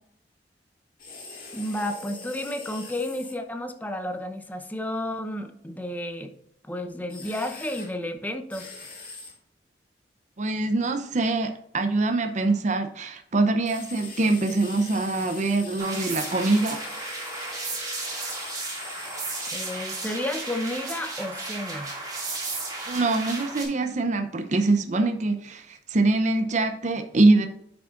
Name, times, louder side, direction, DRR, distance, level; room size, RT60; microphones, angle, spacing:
sound 1, 1.0-3.3 7.1-7.9 8.5-9.3 13.6-19.9, left 4 dB, 50° left, 2.1 m, -42 dB
voice 1, 1.5-6.3 6.6-8.7 19.5-21.9, left 1 dB, 10° left, 7 dB, 0.7 m, -32 dB
voice 2, 10.4-16.9 22.9-27.5, right 2 dB, 40° right, 6 dB, 0.6 m, -24 dB
sound 2, 15.8-23.6, right 3 dB, 20° right, 2.1 m, -34 dB
9.5 x 6.0 x 2.5 m, 0.76 s
head